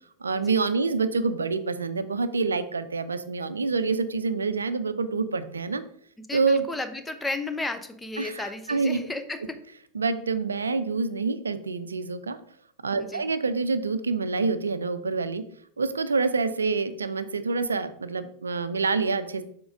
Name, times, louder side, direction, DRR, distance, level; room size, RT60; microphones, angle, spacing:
voice 1, 0.2-5.8 6.3-6.6 8.2-9.0 9.9-12.4 12.8-15.4 15.8-19.4, right 4 dB, 75° right, 11 dB, 0.5 m, -27 dB
voice 2, 6.3-9.6 13.0-13.2, left 2 dB, 10° left, 8 dB, 0.7 m, -33 dB
7.0 x 3.7 x 5.0 m, 0.64 s
figure-of-eight pair, 90°, 0 cm